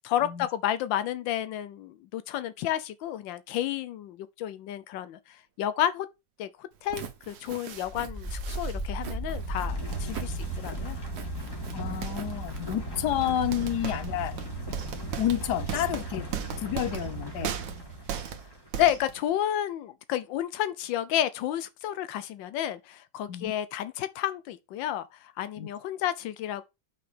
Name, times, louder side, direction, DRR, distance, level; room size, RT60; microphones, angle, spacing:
voice 1, 0.0-6.1 6.4-11.0 18.2-18.3 18.8-26.6, left 11 dB, 90° left, 1.4 m, -31 dB
Walk footsteps, 6.7-13.5, right 8 dB, 60° right, 1.5 m, -46 dB
sound 1, 7.3-7.9 8.2-8.8 9.9-10.1 11.1-11.2 11.7-12.4 13.3-19.3, right 8 dB, 80° right, 1.6 m, -38 dB
sound 2, 7.8-18.6, right 1 dB, 15° left, 2.0 m, -36 dB
voice 2, 11.7-14.4 15.2-16.3 16.6-17.5 23.3-23.5 25.6-25.7, left 11 dB, 70° left, 1.4 m, -30 dB
6.1 x 5.7 x 5.1 m
omnidirectional pair, 2.0 m